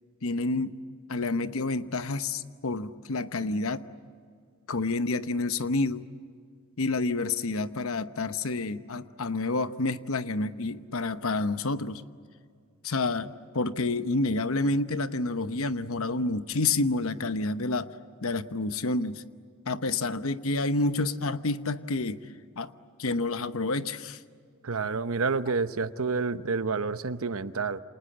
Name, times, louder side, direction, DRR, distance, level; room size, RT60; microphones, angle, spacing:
voice 1, 0.2-0.8 1.1-3.8 4.7-6.1 6.8-12.0 12.8-17.9 18.2-19.2 19.7-22.2 22.6-22.7 23.0-24.2, left 3 dB, 70° left, 12 dB, 0.9 m, -29 dB
voice 2, 24.6-27.8, right 4 dB, 75° right, 12 dB, 0.9 m, -29 dB
28.5 x 27.0 x 7.7 m, 2.1 s
head